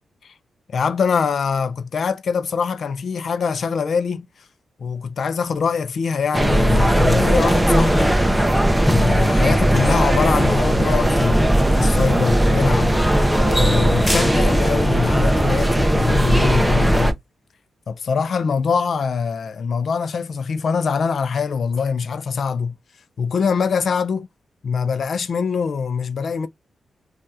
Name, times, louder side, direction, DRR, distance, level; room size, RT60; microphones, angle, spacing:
voice 1, 0.7-4.3 4.8-8.2 8.8-13.0 13.5-17.1 17.9-22.7 23.2-24.3 24.6-26.5, left 5 dB, 60° left, 0.4 m, -23 dB
sound 1, 6.3-17.1, right 1 dB, 5° right, 0.5 m, -17 dB
2.7 x 2.3 x 3.2 m
wide cardioid pair, 115°, 0 cm